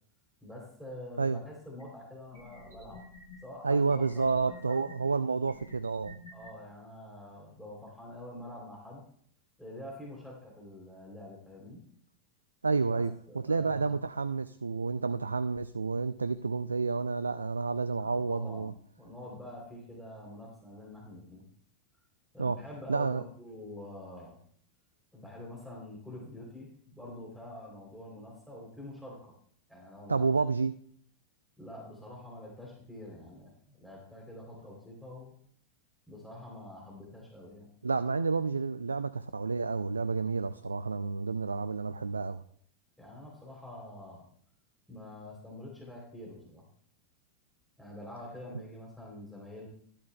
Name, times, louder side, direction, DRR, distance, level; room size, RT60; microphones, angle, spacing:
voice 1, 0.4-3.0 3.4-4.8 6.3-9.0 9.6-11.8 12.9-13.9 18.0-21.4 22.3-24.4 25.1-29.3 29.7-30.3 31.6-35.4 36.1-37.7 43.0-44.3 44.9-46.6 47.8-49.7, left 1 dB, ahead, -3 dB, 3.3 m, -46 dB
sound 1, 1.8-1.9 2.3-3.4 3.9-4.9 5.4-6.5, left 3 dB, 75° left, 4.9 m, -51 dB
voice 2, 3.6-6.2 12.6-13.1 13.5-18.7 22.4-22.6 22.9-23.2 30.1-30.7 37.8-42.4, right 4 dB, 75° right, 13 dB, 0.3 m, -30 dB
13.0 x 11.5 x 2.3 m, 0.62 s
figure-of-eight pair, 90°, 0 cm